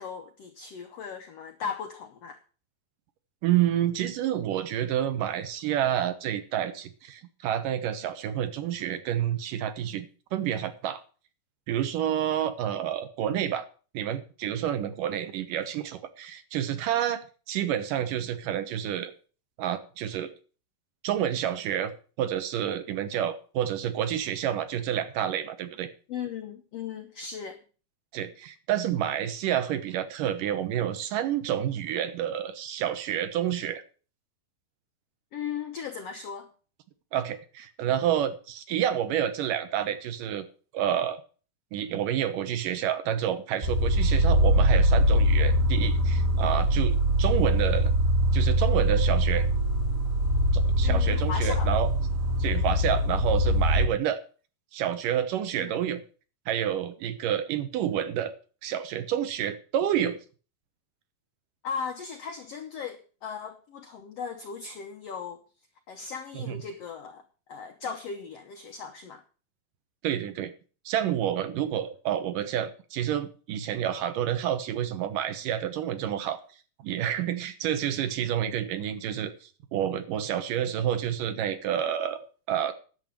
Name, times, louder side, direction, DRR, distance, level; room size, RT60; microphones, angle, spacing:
voice 1, 0.0-2.4 26.1-27.6 35.3-36.5 50.8-51.7 55.5-55.8 61.6-65.4 65.9-67.2 67.5-69.2, left 6 dB, 80° left, 1.4 m, -37 dB
voice 2, 3.4-10.1 10.3-11.0 11.7-13.6 13.9-19.1 19.6-20.3 21.0-21.9 22.2-25.9 28.1-33.8 37.1-40.5 40.7-41.2 41.7-47.9 48.3-49.5 50.5-51.9 52.4-54.2 54.7-56.0 56.5-58.3 58.6-60.2 66.3-66.6 70.0-70.5 70.9-76.4 76.8-82.7, right 10 dB, 70° right, 2.5 m, -29 dB
sound 1, 43.6-53.9, equal, 35° right, 1.4 m, -23 dB
11.0 x 7.1 x 7.5 m
omnidirectional pair, 4.2 m